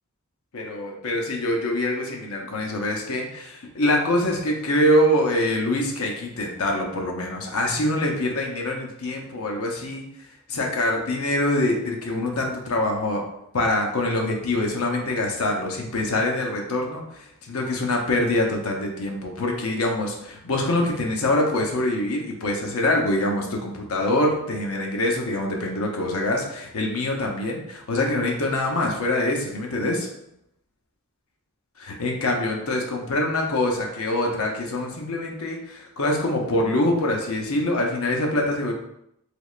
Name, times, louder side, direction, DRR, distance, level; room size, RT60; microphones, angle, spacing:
voice 1, 0.5-10.1 10.5-13.2 13.5-30.1 31.8-38.7, left 1 dB, 75° left, 1 dB, 0.7 m, -24 dB
3.3 x 3.1 x 2.4 m, 0.77 s
head